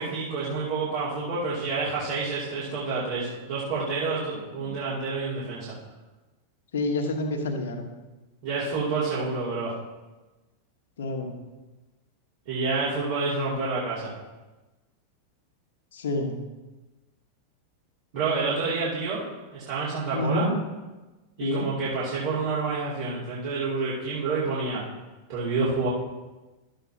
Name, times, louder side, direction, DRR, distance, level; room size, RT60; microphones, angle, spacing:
voice 1, 0.0-5.8 8.4-9.7 12.5-14.1 18.1-19.2 19.5-20.5 21.4-24.8 25.3-25.9, right 4 dB, 50° right, -8 dB, 2.6 m, -28 dB
voice 2, 6.7-7.9 11.0-11.3 15.9-16.4 20.1-20.6 21.4-21.7, left 2 dB, 60° left, 4 dB, 1.3 m, -28 dB
12.5 x 7.7 x 2.9 m, 1.2 s
figure-of-eight pair, 90°, 0 cm